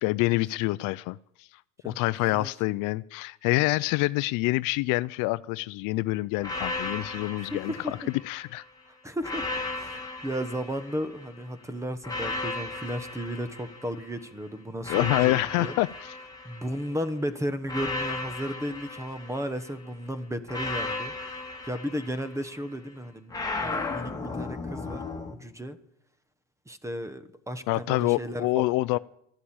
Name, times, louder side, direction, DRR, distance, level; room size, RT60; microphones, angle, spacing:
voice 1, 0.0-1.5 1.8-7.7 8.2-8.6 14.9-15.9 27.7-29.0, left 20 dB, 60° left, 0.5 m, -26 dB
sound 1, 6.4-8.6 9.2-11.4 12.0-14.2 14.8-17.0 17.7-19.8 20.5-22.6 23.3-25.3, left 3 dB, 10° left, 2.1 m, -35 dB
voice 2, 7.4-7.9 9.0-9.5 9.7-15.7 16.4-25.8 26.7-29.0, equal, 10° right, 1.1 m, -34 dB
13.0 x 11.5 x 8.8 m
supercardioid pair, 120°, 37 cm